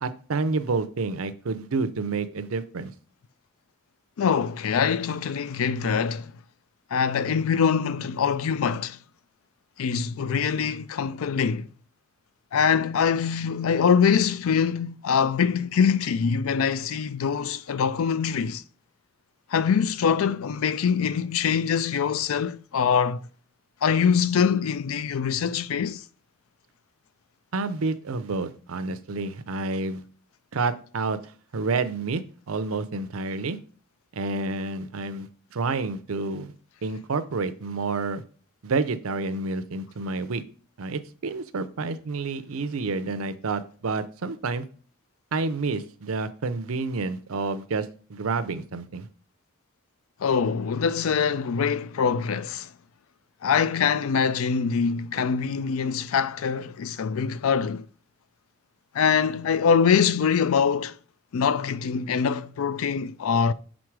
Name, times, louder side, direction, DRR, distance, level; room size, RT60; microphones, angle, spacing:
voice 1, 0.0-2.9 27.5-30.0 30.5-31.2 31.5-32.2 32.5-33.6 34.1-36.5 36.8-38.2 38.6-40.4 40.8-44.6 45.3-49.1, right 3 dB, 80° right, 0.6 m, -29 dB
voice 2, 4.2-6.3 6.9-9.0 9.8-11.7 12.5-18.6 19.5-23.2 23.8-26.0 50.2-52.7 53.4-57.9 58.9-61.0 61.3-63.5, left 6 dB, 75° left, 0.4 m, -24 dB
6.2 x 3.9 x 4.6 m
head